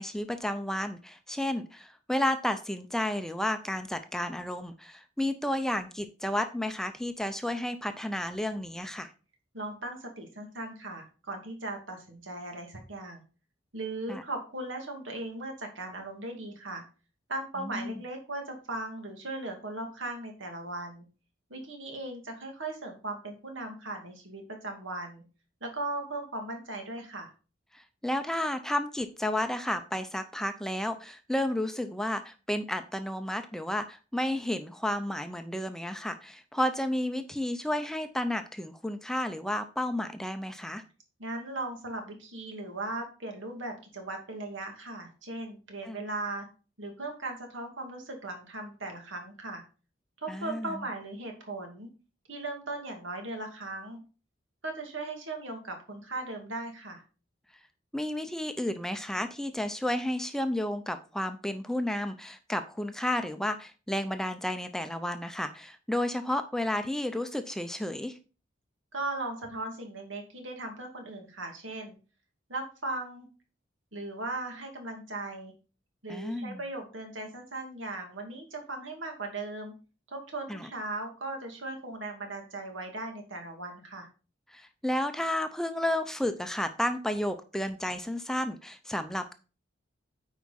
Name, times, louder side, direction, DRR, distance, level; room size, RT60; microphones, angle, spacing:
voice 1, 0.0-9.1 14.1-14.2 17.6-18.0 27.7-40.8 45.8-46.0 50.3-50.7 57.9-68.2 76.1-76.6 80.5-80.7 84.5-89.3, left 1 dB, 5° left, 8 dB, 0.5 m, -32 dB
voice 2, 9.5-13.2 13.7-16.8 17.3-21.0 21.5-25.2 25.6-27.3 41.2-46.5 46.8-49.6 50.2-51.9 52.3-54.0 54.6-57.0 68.9-71.9 72.5-73.3 73.9-75.5 76.0-79.7 80.1-84.1, right 2 dB, 85° right, 3 dB, 2.3 m, -38 dB
9.2 x 4.7 x 4.1 m, 0.34 s
head